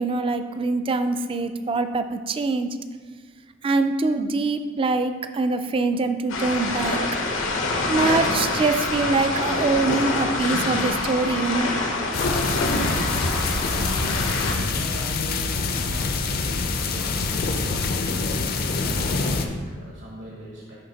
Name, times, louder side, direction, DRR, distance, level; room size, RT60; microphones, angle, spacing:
voice 1, 0.0-2.8 3.6-7.0 7.9-11.7, right 3 dB, 25° right, 9 dB, 0.3 m, -24 dB
sound 1, 6.3-14.5, left 2 dB, 80° left, 1.0 m, -26 dB
sound 2, 12.1-19.5, left 3 dB, 50° left, 0.5 m, -25 dB
voice 2, 13.3-20.7, equal, 70° right, -4 dB, 1.2 m, -41 dB
10.5 x 3.5 x 4.0 m, 1.6 s
head